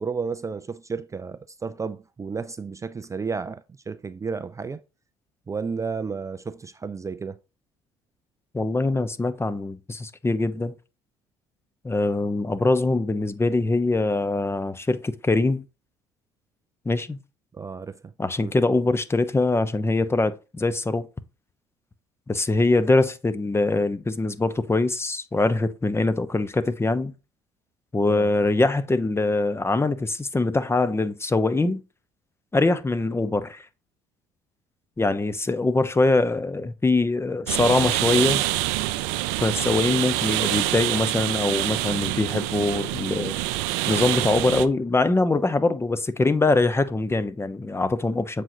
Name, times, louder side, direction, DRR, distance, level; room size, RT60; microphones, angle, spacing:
voice 1, 0.0-4.8 5.5-7.4 17.5-18.0 18.4-18.5 28.1-28.3, right 5 dB, 25° right, 0.4 m, -32 dB
voice 2, 8.5-10.7 11.8-15.6 16.8-17.2 18.2-21.1 22.3-27.1 27.9-31.8 32.5-33.7 35.0-38.4 39.4-43.3 43.9-48.4, left 2 dB, 20° left, 0.8 m, -23 dB
sound 1, 37.5-44.7, right 15 dB, 80° right, 0.5 m, -26 dB
7.5 x 5.0 x 2.7 m
hypercardioid pair, 60°, 13 cm